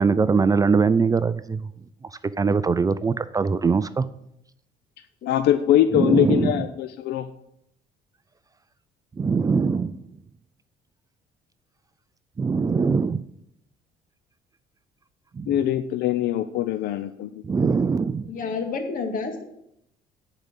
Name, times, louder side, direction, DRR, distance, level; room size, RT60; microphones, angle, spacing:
voice 1, 0.0-1.6 2.4-4.1 5.9-6.6 9.2-10.0 12.4-13.2 15.4-15.6 17.4-18.2, right 5 dB, 20° right, 14 dB, 0.4 m, -22 dB
voice 2, 5.3-7.3 15.5-17.3, left 11 dB, 75° left, 10 dB, 0.6 m, -22 dB
voice 3, 18.2-19.4, left 4 dB, 55° left, 4 dB, 2.2 m, -30 dB
10.5 x 5.0 x 8.2 m, 0.76 s
cardioid pair, 110°, 17 cm